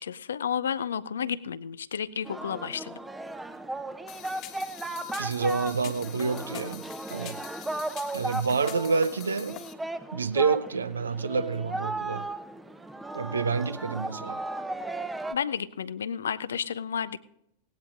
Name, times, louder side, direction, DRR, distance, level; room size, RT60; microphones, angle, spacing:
voice 1, 0.0-3.0 15.3-17.2, left 8 dB, 65° left, 0.4 m, -31 dB
Singing, 2.2-15.3, right 2 dB, 10° right, 0.7 m, -36 dB
sound 1, 4.1-9.7, left 12 dB, 40° left, 1.3 m, -45 dB
voice 2, 5.2-7.4 8.1-9.6 10.1-12.2 13.1-14.4, right 5 dB, 75° right, 0.6 m, -28 dB
18.0 x 17.5 x 2.5 m
figure-of-eight pair, 90°, 0 cm